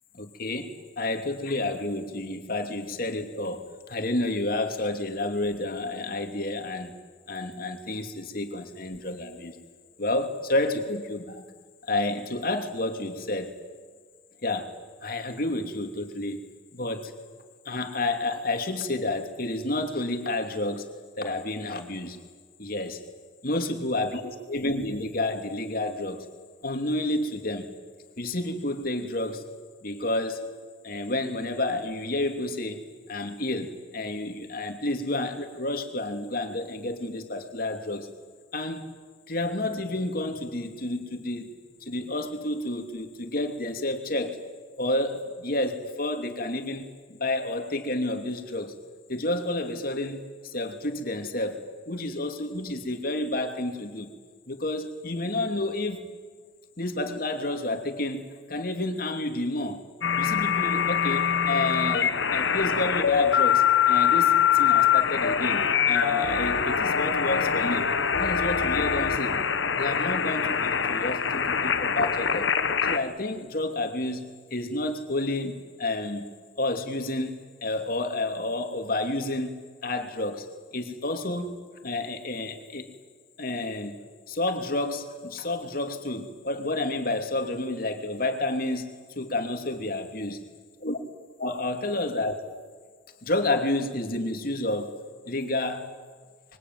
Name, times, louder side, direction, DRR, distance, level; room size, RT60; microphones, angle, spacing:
voice 1, 0.1-3.6 3.9-7.0 7.3-9.6 10.0-11.4 11.8-13.5 14.4-14.8 15.0-16.4 16.7-17.1 17.6-22.2 22.6-23.0 23.4-26.3 26.6-27.7 28.2-29.5 29.8-30.5 30.8-38.1 38.5-38.9 39.3-41.5 41.8-44.4 44.8-48.8 49.1-54.1 54.5-56.1 56.8-59.8 60.2-67.9 68.2-69.4 69.7-72.6 72.9-76.3 76.6-80.5 80.7-82.9 83.4-84.0 84.3-90.4 90.8-91.0 91.4-92.4 93.2-95.0 95.2-95.9, left 2 dB, 50° left, 5 dB, 2.8 m, -30 dB
sound 1, 60.0-73.0, left 8 dB, 85° left, 1.3 m, -24 dB
25.5 x 23.5 x 9.4 m, 1.5 s
head